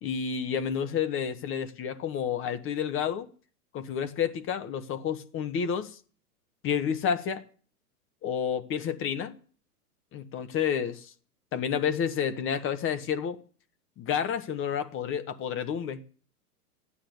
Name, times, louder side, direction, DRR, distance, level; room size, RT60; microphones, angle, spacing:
voice 1, 0.0-3.3 3.7-6.0 6.6-7.4 8.2-9.3 10.1-11.1 11.5-13.4 14.0-16.0, left 7 dB, 25° left, 1.3 m, -30 dB
14.0 x 9.9 x 7.9 m
hypercardioid pair, 115°, 46 cm